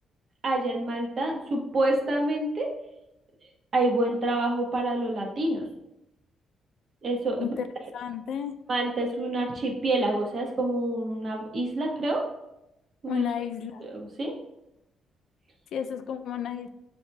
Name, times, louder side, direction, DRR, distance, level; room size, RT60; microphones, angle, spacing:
voice 1, 0.4-2.7 3.7-5.6 7.0-7.5 8.7-12.2 13.0-13.2 13.8-14.3, right 2 dB, 45° right, 0 dB, 1.0 m, -27 dB
voice 2, 7.9-8.5 13.1-13.8 15.7-16.7, left 9 dB, 70° left, 8 dB, 0.4 m, -32 dB
7.0 x 2.7 x 2.3 m, 0.88 s
cardioid pair, 90°, 0 cm